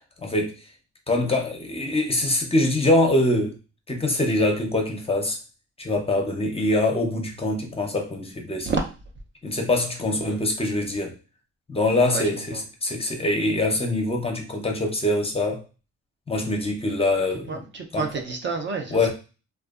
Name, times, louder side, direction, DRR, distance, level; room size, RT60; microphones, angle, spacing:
voice 1, 0.2-0.5 1.1-3.5 3.9-5.4 5.8-8.7 9.4-11.2 11.7-15.6 16.3-17.6 17.9-18.1 18.9-19.1, left 2 dB, 20° left, 2 dB, 0.6 m, -24 dB
voice 2, 12.1-12.6 17.5-19.0, right 4 dB, 40° right, 3 dB, 0.5 m, -29 dB
2.6 x 2.3 x 2.3 m, 0.33 s
cardioid pair, 90°, 30 cm